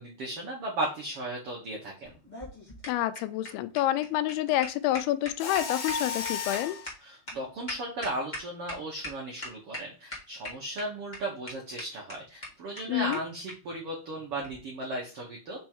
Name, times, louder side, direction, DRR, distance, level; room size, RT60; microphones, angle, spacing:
voice 1, 0.0-2.1 7.0-15.6, right 1 dB, 70° right, -2 dB, 1.3 m, -36 dB
sound 1, 2.0-8.7 9.0-9.1 9.4-9.8 10.1-10.8 11.1-11.2 11.5-11.6 11.8-11.9 12.1-12.2 12.4-12.5 12.8-12.9 13.1-13.2 13.5-13.6 14.4-14.6, left 1 dB, 45° left, 0.5 m, -39 dB
voice 2, 2.9-6.8 12.9-13.2, left 14 dB, 85° left, 13 dB, 2.5 m, -28 dB
Mechanisms, 5.4-6.9, left 5 dB, 65° left, 2.7 m, -33 dB
6.0 x 3.6 x 4.5 m, 0.34 s
omnidirectional pair, 4.5 m